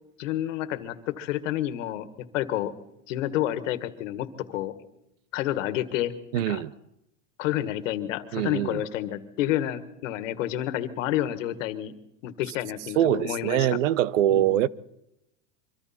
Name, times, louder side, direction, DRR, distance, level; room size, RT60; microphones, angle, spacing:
voice 1, 0.2-2.1 2.3-2.7 3.1-4.7 5.3-6.6 7.4-11.9 12.2-13.7 14.3-14.6, left 13 dB, 80° left, 1.7 m, -29 dB
voice 2, 6.3-6.7 8.3-8.8 13.0-14.7, right 12 dB, 85° right, 0.8 m, -23 dB
25.0 x 24.0 x 4.3 m
supercardioid pair, 130°, 38 cm